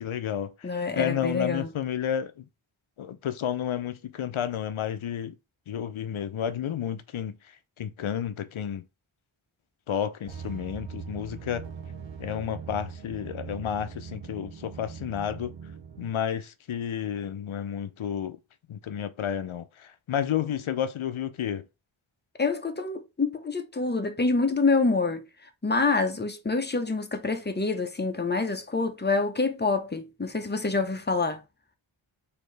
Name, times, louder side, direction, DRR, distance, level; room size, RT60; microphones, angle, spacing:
voice 1, 0.0-2.4 3.0-5.3 5.7-7.4 7.8-8.8 9.9-11.7 12.2-15.5 16.0-18.4 18.7-21.6, left 9 dB, 70° left, 0.6 m, -31 dB
voice 2, 0.6-1.7 22.4-25.3 25.6-31.4, left 3 dB, 20° left, 0.7 m, -26 dB
sound 1, 10.3-16.1, right 6 dB, 60° right, 0.7 m, -41 dB
4.2 x 2.8 x 3.3 m
wide cardioid pair, 50°, 50 cm